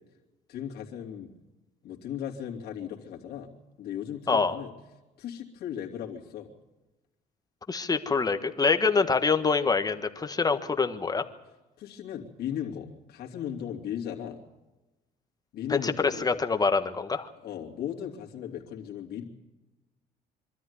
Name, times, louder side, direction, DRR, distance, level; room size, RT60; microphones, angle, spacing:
voice 1, 0.5-1.3 1.8-3.5 3.8-4.7 5.2-6.5 11.8-14.4 15.5-16.3 17.4-19.2, left 9 dB, 70° left, -1 dB, 2.9 m, -37 dB
voice 2, 4.3-4.6 7.7-11.2 15.7-17.3, left 4 dB, 20° left, 8 dB, 1.4 m, -25 dB
24.5 x 13.5 x 9.8 m, 1.1 s
cardioid pair, 110°, 17 cm